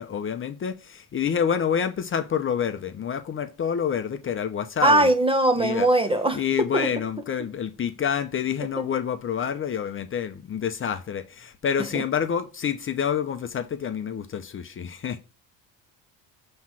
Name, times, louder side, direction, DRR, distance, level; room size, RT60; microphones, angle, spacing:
voice 1, 0.0-5.1 5.6-5.9 6.3-15.2, left 7 dB, 30° left, 0.7 m, -28 dB
voice 2, 4.8-6.4 6.7-6.9, right 1 dB, 15° right, 0.7 m, -20 dB
7.2 x 3.2 x 6.0 m
cardioid pair, 110°, 40 cm